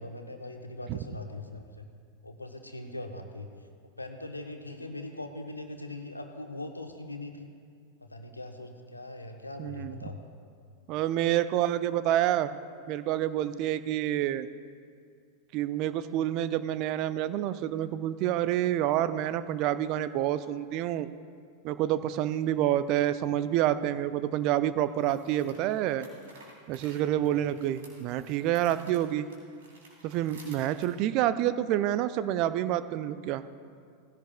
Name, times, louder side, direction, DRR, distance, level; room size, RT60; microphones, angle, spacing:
voice 1, 0.0-1.9 2.2-3.5 4.0-7.5 8.0-10.2 12.0-12.1, left 2 dB, 85° left, 5 dB, 1.1 m, -41 dB
voice 2, 9.6-10.0 10.9-12.5 12.9-14.5 15.5-21.1 21.6-26.1 26.7-29.3 30.0-33.4, right 12 dB, 40° right, 13 dB, 0.5 m, -28 dB
sound 1, 22.2-22.3 24.8-30.9, right 2 dB, 60° right, 3.5 m, -55 dB
18.5 x 16.0 x 2.3 m, 2.2 s
figure-of-eight pair, 90°, 0 cm